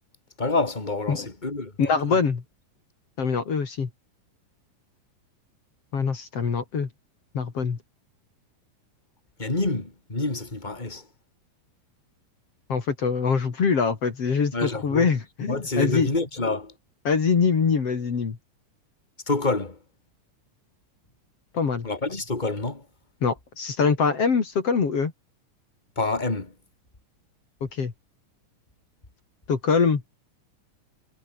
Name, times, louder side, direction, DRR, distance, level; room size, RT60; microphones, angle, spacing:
voice 1, 0.4-1.7 2.0-2.2 9.4-11.0 14.5-15.1 15.5-16.7 19.3-19.8 21.8-22.8 26.0-26.5, left 3 dB, 15° left, 3.6 m, -27 dB
voice 2, 1.8-2.4 3.2-3.9 5.9-6.9 7.3-7.8 12.7-16.1 17.0-18.4 21.5-21.9 23.2-25.1 27.7-27.9 29.5-30.0, left 5 dB, 45° left, 3.5 m, -24 dB
omnidirectional pair, 4.0 m